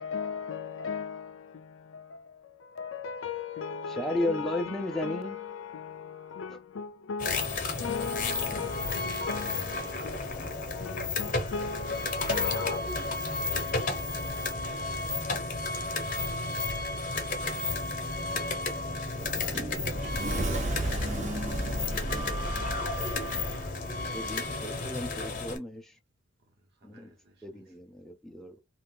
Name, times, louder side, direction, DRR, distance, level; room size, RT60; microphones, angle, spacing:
voice 1, 0.0-12.8, left 5 dB, 75° left, 0.5 m, -37 dB
voice 2, 3.9-5.4 6.5-6.6 24.0-25.9 26.8-27.1 27.4-28.6, left 1 dB, ahead, 0.5 m, -34 dB
sound 1, 7.2-25.6, left 3 dB, 40° left, 0.9 m, -32 dB
Sliding door, 18.8-23.7, right 1 dB, 35° right, 0.7 m, -33 dB
voice 3, 19.4-21.8 24.0-25.0 26.8-27.6, right 1 dB, 50° right, 1.1 m, -56 dB
2.7 x 2.4 x 3.6 m
head